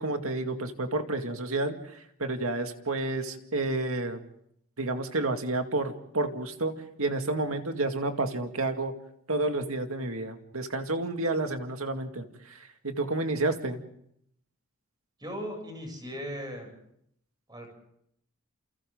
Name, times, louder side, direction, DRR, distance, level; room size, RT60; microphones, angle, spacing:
voice 1, 0.0-4.2 4.8-8.9 9.3-13.8, right 2 dB, 75° right, 6 dB, 2.2 m, -30 dB
voice 2, 15.2-16.7 17.5-17.7, equal, 20° right, 2 dB, 7.6 m, -38 dB
30.0 x 28.5 x 3.9 m, 0.71 s
head